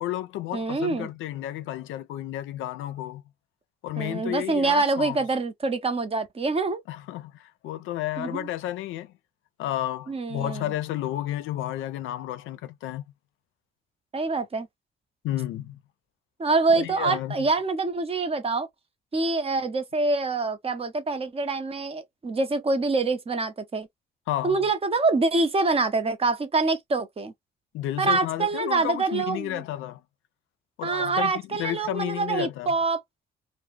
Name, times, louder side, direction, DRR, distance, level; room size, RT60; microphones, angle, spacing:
voice 1, 0.0-3.2 3.8-5.2 6.9-9.1 9.6-13.0 15.2-15.8 16.7-17.5 24.3-24.7 27.7-30.0 30.8-32.7, left 13 dB, 85° left, 0.4 m, -32 dB
voice 2, 0.5-1.1 4.0-6.8 8.2-8.5 10.1-10.7 14.1-14.7 16.4-18.7 19.1-23.9 24.4-27.3 28.0-29.6 30.8-33.0, right 3 dB, 30° right, 0.6 m, -25 dB
2.2 x 2.1 x 3.2 m
cardioid pair, 90°, 20 cm